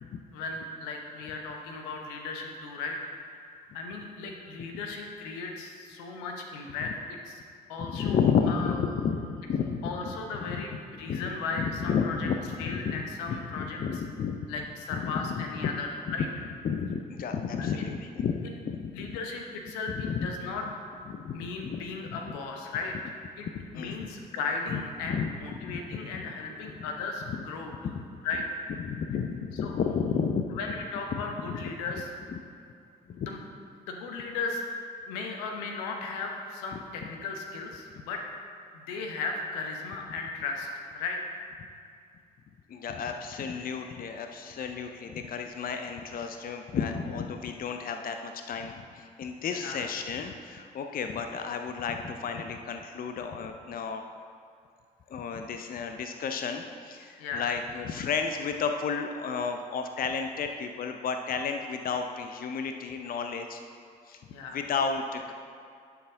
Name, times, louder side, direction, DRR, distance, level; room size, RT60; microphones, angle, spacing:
voice 1, 0.3-3.0 3.5-6.9 7.3-7.4 7.7-8.2 8.5-8.7 9.8-12.3 12.6-13.8 14.5-16.3 17.6-17.8 18.9-20.6 21.3-22.9 23.4-23.5 23.7-27.7 28.2-28.6 29.6-29.7 30.6-32.1 33.2-33.4 33.9-34.6 35.1-38.2 38.7-41.3 49.5-49.8 57.2-57.5 64.3-64.6, left 4 dB, 75° left, 2 dB, 0.9 m, -36 dB
voice 2, 7.8-10.1 10.5-10.8 11.1-11.3 11.6-14.4 14.9-15.7 16.1-16.2 16.6-19.2 19.9-20.3 21.1-22.3 23.5-24.1 24.7-25.3 25.6-26.2 27.3-27.4 27.8-28.2 28.8-30.6 31.1-31.6 32.3-32.4 33.1-33.3 42.7-54.0 55.1-63.6 64.1-64.2 64.5-65.3, left 6 dB, 45° left, 6 dB, 0.6 m, -32 dB
11.0 x 5.9 x 3.8 m, 2.4 s
figure-of-eight pair, 40°, 21 cm